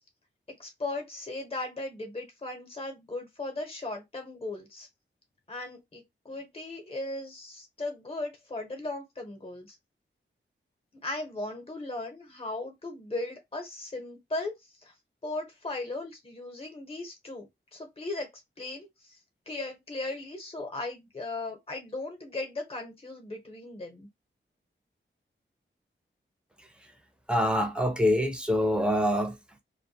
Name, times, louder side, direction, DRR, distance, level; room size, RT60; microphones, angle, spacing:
voice 1, 0.5-4.9 5.5-9.8 10.9-14.5 14.8-14.9 15.2-17.5 17.7-18.3 18.6-19.2 19.5-24.1, left 2 dB, 30° left, 0.8 m, -37 dB
voice 2, 27.3-29.6, left 1 dB, 5° right, 0.6 m, -25 dB
2.2 x 2.1 x 2.7 m
wide cardioid pair, 90°, 21 cm